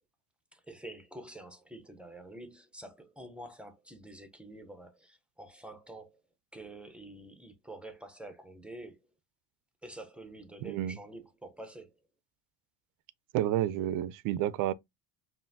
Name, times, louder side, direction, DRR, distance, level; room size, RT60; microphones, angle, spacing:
voice 1, 0.5-6.2 6.5-9.0 9.8-11.9, right 1 dB, 5° right, 0.6 m, -47 dB
voice 2, 10.6-11.0 13.3-14.7, right 12 dB, 50° right, 0.5 m, -30 dB
5.4 x 2.6 x 2.6 m
cardioid pair, 135°, 43 cm